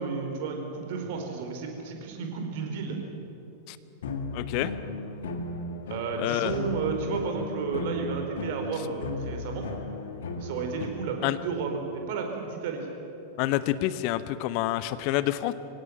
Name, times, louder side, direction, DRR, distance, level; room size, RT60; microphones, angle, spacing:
voice 1, 0.0-3.0 5.9-9.7 10.4-12.9, right 5 dB, 50° right, 3 dB, 4.5 m, -32 dB
sound 1, 4.0-10.9, left 2 dB, 60° left, 2.0 m, -35 dB
voice 2, 4.3-4.7 6.2-6.6 11.2-11.4 13.4-15.5, left 15 dB, 45° left, 14 dB, 0.9 m, -27 dB
24.0 x 17.0 x 9.5 m, 3.0 s
figure-of-eight pair, 90°, 0 cm